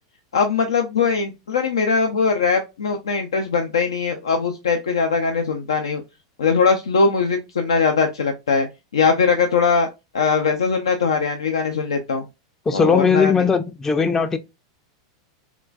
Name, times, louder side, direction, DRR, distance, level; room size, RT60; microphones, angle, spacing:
voice 1, 0.3-6.0 6.4-8.7 8.9-9.9 10.1-12.2 12.7-13.3, left 5 dB, 85° left, 0.5 m, -20 dB
voice 2, 12.7-14.4, left 5 dB, 20° left, 0.4 m, -18 dB
3.7 x 2.3 x 2.3 m
hypercardioid pair, 105°, 2 cm